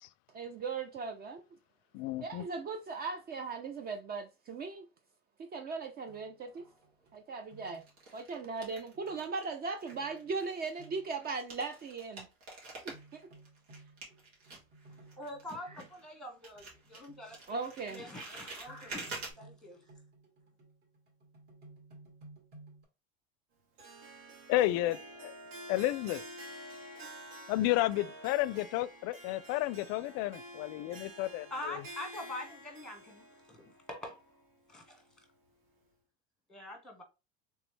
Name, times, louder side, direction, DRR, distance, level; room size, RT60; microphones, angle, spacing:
voice 1, 0.3-1.4 2.2-4.9 5.4-6.7 7.1-7.8 8.1-12.3 13.1-13.2 17.5-18.0, right 4 dB, 30° right, 0.5 m, -38 dB
voice 2, 1.9-2.4 24.5-25.3 25.7-26.2 27.5-31.8, left 16 dB, 55° left, 0.4 m, -32 dB
sound 1, 6.1-8.0 8.3-8.4 8.9-9.3 9.9-10.4 10.8-11.2 12.9-16.0 16.5-17.4 17.7-18.3 18.7-22.8, right 2 dB, 45° right, 2.0 m, -58 dB
sound 2, 6.4-7.1 7.6-9.5 9.8-16.2 16.4-19.3, right 3 dB, 85° right, 2.0 m, -48 dB
voice 3, 14.9-17.6 17.9-19.8 31.5-34.2 34.7-35.0 36.5-37.0, left 1 dB, ahead, 1.1 m, -44 dB
Harp, 23.8-35.0, right 1 dB, 70° right, 1.6 m, -49 dB
3.4 x 3.1 x 3.2 m
supercardioid pair, 125°, 31 cm